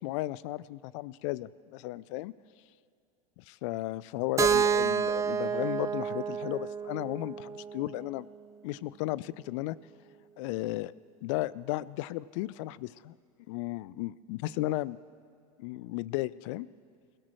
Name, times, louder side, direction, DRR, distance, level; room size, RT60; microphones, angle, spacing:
voice 1, 0.0-2.3 3.4-8.3 8.6-9.8 10.4-10.9 11.2-13.2 13.5-15.0 15.6-16.7, left 17 dB, 55° left, 21 dB, 0.4 m, -34 dB
Keyboard (musical), 4.4-8.3, right 7 dB, 15° right, 0.5 m, -29 dB
26.5 x 16.5 x 3.1 m, 2.4 s
figure-of-eight pair, 80°, 19 cm